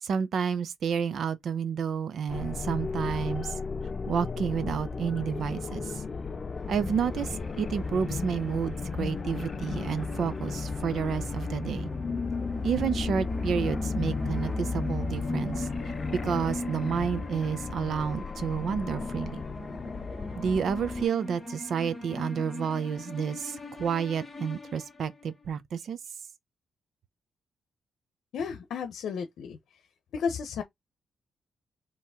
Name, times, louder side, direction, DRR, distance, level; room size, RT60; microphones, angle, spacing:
voice 1, 0.0-3.5 4.1-6.0 6.7-11.9 12.6-15.7 16.1-19.4 20.4-26.0, right 7 dB, 60° right, 0.6 m, -30 dB
sound 1, 2.3-21.1, left 4 dB, 30° left, 0.4 m, -34 dB
sound 2, 6.5-25.3, left 2 dB, 10° left, 2.2 m, -40 dB
voice 2, 28.3-29.6 30.1-30.6, left 6 dB, 80° left, 0.8 m, -33 dB
4.5 x 3.0 x 3.6 m
cardioid pair, 140°, 0 cm